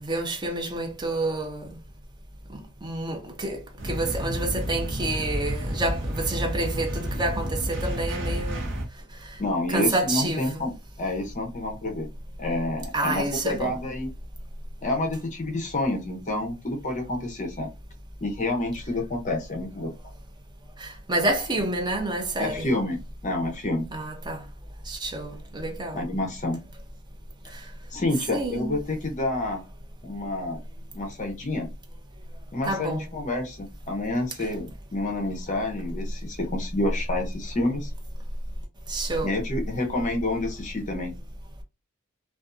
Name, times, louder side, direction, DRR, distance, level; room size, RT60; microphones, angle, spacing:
voice 1, 0.0-1.7 2.8-3.6 3.8-8.6 9.7-10.7 12.9-13.8 20.8-22.7 23.9-24.4 24.9-26.1 28.3-28.7 32.6-33.1 38.9-39.3, right 2 dB, 20° right, 0.5 m, -28 dB
sound 1, 3.8-8.9, equal, 55° right, 0.7 m, -30 dB
voice 2, 9.4-12.1 12.4-14.1 14.8-17.7 18.2-19.9 22.4-23.0 23.2-23.9 25.9-26.6 27.9-29.6 30.0-30.6 30.9-31.7 32.5-37.9 39.2-41.1, left 2 dB, 35° left, 0.6 m, -28 dB
2.5 x 2.2 x 2.4 m
head